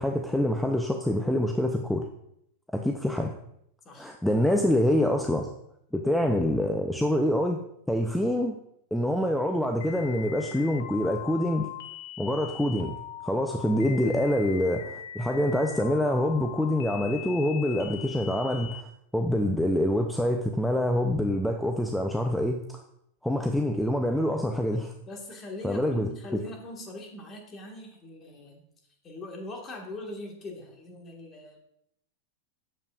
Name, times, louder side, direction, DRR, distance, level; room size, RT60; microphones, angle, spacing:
voice 1, 0.0-2.1 2.7-3.3 4.0-5.5 5.9-8.6 8.9-11.7 12.2-12.9 13.2-18.9 19.1-22.8 23.2-24.9 25.6-26.1, left 1 dB, 5° left, 3 dB, 0.5 m, -26 dB
voice 2, 4.4-5.1 24.7-24.8 25.1-28.6 29.0-31.6, left 1 dB, 30° left, 1 dB, 1.5 m, -42 dB
sound 1, 9.8-18.8, left 12 dB, 75° left, 0.6 m, -41 dB
7.2 x 7.1 x 2.4 m, 0.75 s
hypercardioid pair, 120°, 0 cm